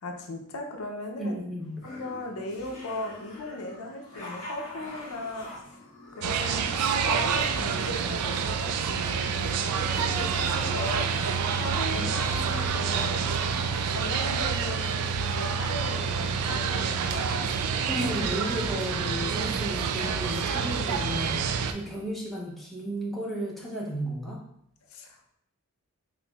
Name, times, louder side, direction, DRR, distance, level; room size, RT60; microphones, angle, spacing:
voice 1, 0.0-1.3 1.8-5.8 6.1-13.3 13.9-17.3 24.9-25.4, left 1 dB, 70° left, 3 dB, 0.5 m, -38 dB
voice 2, 1.2-1.7 11.9-12.1 17.9-24.4, equal, ahead, -5 dB, 0.6 m, -33 dB
sound 1, 1.6-6.9, left 1 dB, 35° left, 1.3 m, -44 dB
sound 2, 6.2-21.7, right 6 dB, 80° right, 0.3 m, -28 dB
4.2 x 3.0 x 2.3 m, 0.73 s
head